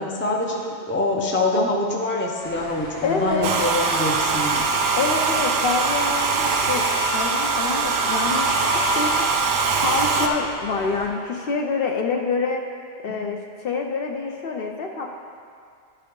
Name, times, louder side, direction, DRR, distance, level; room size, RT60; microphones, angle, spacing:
voice 1, 0.0-4.7 13.1-13.2, left 2 dB, 15° left, 0 dB, 0.5 m, -25 dB
sound 1, 2.4-11.1, equal, 85° left, 2.0 m, -39 dB
voice 2, 3.0-3.5 5.0-9.3 9.8-12.6 13.0-15.1, left 4 dB, 60° left, 2 dB, 0.7 m, -26 dB
Domestic sounds home sounds, 3.4-10.3, right 4 dB, 75° right, 0.9 m, -22 dB
11.5 x 4.6 x 3.7 m, 2.3 s
omnidirectional pair, 1.2 m